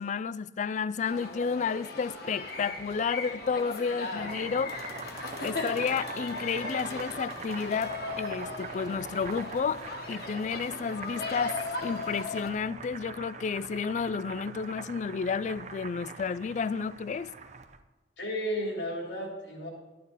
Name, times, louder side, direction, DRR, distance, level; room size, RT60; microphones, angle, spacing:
voice 1, 0.0-4.8 5.4-9.8 10.1-17.3, left 5 dB, 40° left, 0.3 m, -31 dB
sound 1, 1.0-12.5, left 3 dB, 60° left, 1.6 m, -38 dB
Boiling, 4.0-17.8, right 4 dB, 40° right, 0.6 m, -43 dB
voice 2, 18.2-19.7, equal, 80° left, 3.1 m, -33 dB
12.0 x 9.3 x 4.0 m
head